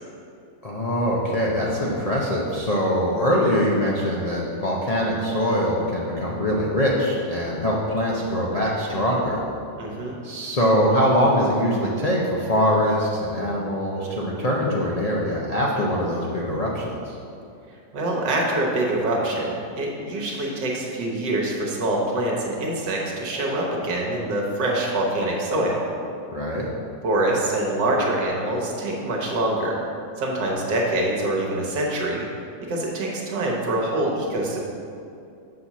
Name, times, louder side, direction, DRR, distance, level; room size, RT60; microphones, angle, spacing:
voice 1, 0.6-9.4 10.2-17.2 26.3-26.7, equal, 60° left, -4 dB, 0.4 m, -23 dB
voice 2, 9.8-10.2 17.9-25.8 27.0-29.8 30.2-32.3 32.7-34.6, right 1 dB, 75° right, -2 dB, 1.8 m, -25 dB
7.3 x 4.2 x 6.1 m, 2.6 s
omnidirectional pair, 1.9 m